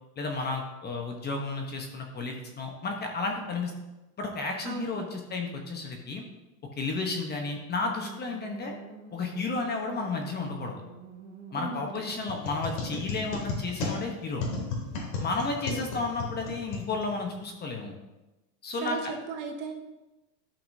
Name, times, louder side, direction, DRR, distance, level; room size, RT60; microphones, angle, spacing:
voice 1, 0.2-3.7 4.2-6.2 6.8-8.7 9.1-10.8 11.5-14.4 15.2-17.9 18.6-19.1, left 3 dB, 20° left, 2 dB, 1.1 m, -32 dB
voice 2, 4.6-5.1 11.5-12.1 15.7-15.9 18.8-19.8, right 5 dB, 40° right, 4 dB, 1.2 m, -36 dB
sound 1, 8.0-13.4, right 4 dB, 15° right, 1.9 m, -47 dB
sound 2, 12.3-17.4, left 3 dB, 80° left, 2.9 m, -35 dB
12.0 x 5.8 x 2.8 m, 1.0 s
supercardioid pair, 135°, 48 cm